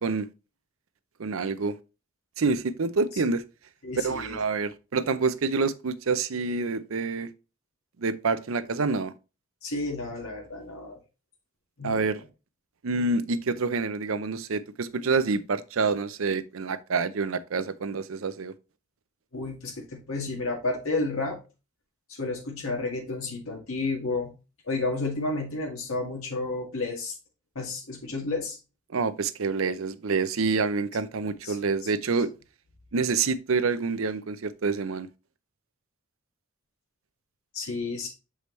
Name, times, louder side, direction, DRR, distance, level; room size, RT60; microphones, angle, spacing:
voice 1, 1.2-1.8 2.4-3.4 4.0-7.3 8.0-9.1 11.8-12.2 12.8-18.5 28.9-32.3 32.9-35.1, right 4 dB, 70° right, 0.6 m, -27 dB
voice 2, 3.8-4.4 9.6-11.0 11.8-12.1 19.3-21.4 22.1-24.3 24.6-27.1 27.6-28.6 31.4-31.6 31.8-31.9 37.5-38.1, left 3 dB, 85° left, 2.0 m, -31 dB
6.8 x 4.9 x 3.1 m
head